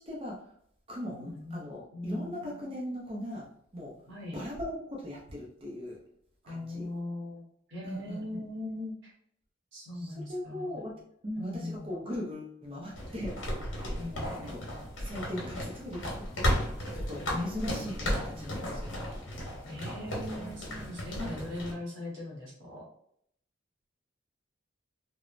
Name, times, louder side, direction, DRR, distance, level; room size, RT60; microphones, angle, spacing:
voice 1, 0.1-0.5 0.9-3.5 3.7-3.9 4.3-6.0 6.5-6.9 7.8-8.4 10.0-10.9 11.2-13.4 13.7-14.0 14.3-14.6 15.0-19.0 20.3-20.8, equal, 30° right, -3 dB, 0.5 m, -39 dB
voice 2, 1.0-2.7 4.1-4.4 6.4-9.1 9.7-10.8 11.4-11.9 13.9-14.5 17.3-17.7 19.7-22.8, left 1 dB, 75° right, -5 dB, 1.0 m, -40 dB
sound 1, 12.9-21.7, equal, 75° left, 1.0 m, -34 dB
3.1 x 2.0 x 2.4 m, 0.68 s
head